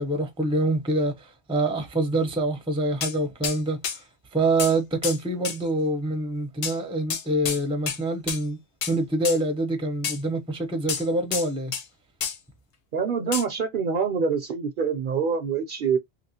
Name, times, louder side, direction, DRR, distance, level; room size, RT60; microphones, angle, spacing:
voice 1, 0.0-4.0 4.3-8.6 8.9-11.7, right 2 dB, 5° right, 0.5 m, -26 dB
sound 1, 3.0-3.1 3.4-3.6 3.8-4.0 4.6-4.8 5.0-5.2 5.4-5.6 6.6-6.8 7.1-7.6 7.9-8.0 8.3-8.4 8.8-9.0 9.2-9.4 10.0-10.2 10.9-11.8 12.2-12.4 13.3-13.4, left 7 dB, 70° left, 0.8 m, -29 dB
voice 2, 12.9-16.0, right 6 dB, 60° right, 0.6 m, -25 dB
3.0 x 2.9 x 2.7 m
omnidirectional pair, 1.1 m